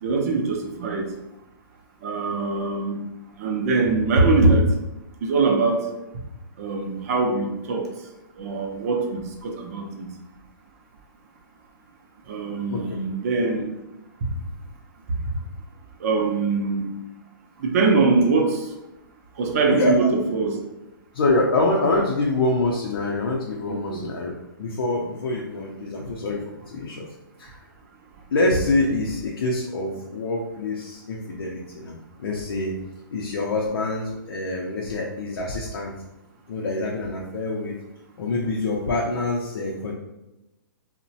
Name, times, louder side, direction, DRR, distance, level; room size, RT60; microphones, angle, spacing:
voice 1, 0.0-1.1 2.0-3.0 3.4-4.7 5.2-5.9 6.6-7.9 8.4-10.1 12.3-13.7 14.2-14.3 15.3-15.4 16.0-16.9 17.6-18.7 19.4-20.6 23.7-24.0, right 3 dB, 40° right, 2 dB, 0.5 m, -22 dB
voice 2, 19.7-20.1 21.1-27.0 27.4-27.5 28.3-32.7 33.1-35.9 36.5-37.8 38.2-39.9, left 2 dB, 75° left, -2 dB, 0.5 m, -25 dB
2.9 x 2.1 x 2.7 m, 0.97 s
hypercardioid pair, 160°, 12 cm